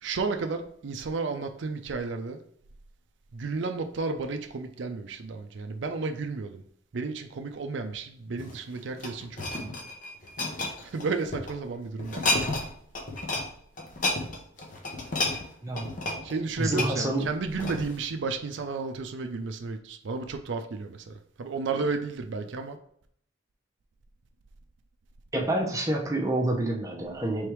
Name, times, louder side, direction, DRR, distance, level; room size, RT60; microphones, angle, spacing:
voice 1, 0.0-2.4 3.3-6.6 6.9-9.7 10.8-12.6 16.2-22.8, right 4 dB, 70° right, 0.4 m, -33 dB
sound 1, 8.3-11.5 12.0-12.7 12.9-13.5 13.8-18.0 18.6-18.8, left 2 dB, 40° left, 0.8 m, -31 dB
voice 2, 16.6-17.2 25.3-27.5, right 1 dB, 15° right, 0.7 m, -28 dB
3.5 x 3.3 x 4.5 m
head